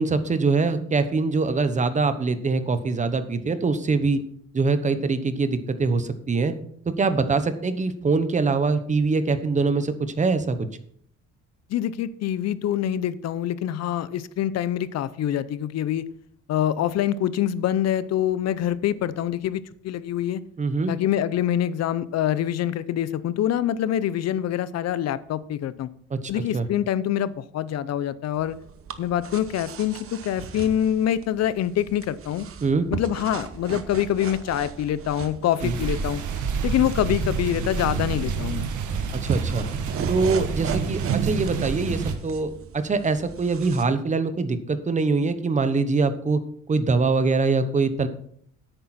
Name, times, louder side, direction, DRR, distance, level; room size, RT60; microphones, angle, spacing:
voice 1, 0.0-4.2 4.5-6.5 6.9-10.7 20.6-20.9 26.1-26.2 26.5-26.7 32.6-32.9 35.6-35.8 39.1-39.7 40.1-46.4 46.7-48.1, right 4 dB, 25° right, 11 dB, 0.9 m, -23 dB
voice 2, 11.7-16.1 16.5-20.4 20.9-25.9 26.3-28.6 29.0-32.5 32.9-36.2 36.6-38.7, left 11 dB, 55° left, 16 dB, 0.7 m, -25 dB
sound 1, 28.3-43.8, right 6 dB, 45° right, 1.0 m, -37 dB
sound 2, 35.6-42.1, right 5 dB, 70° right, 1.5 m, -28 dB
10.5 x 9.0 x 4.3 m, 0.64 s
cardioid pair, 145°, 31 cm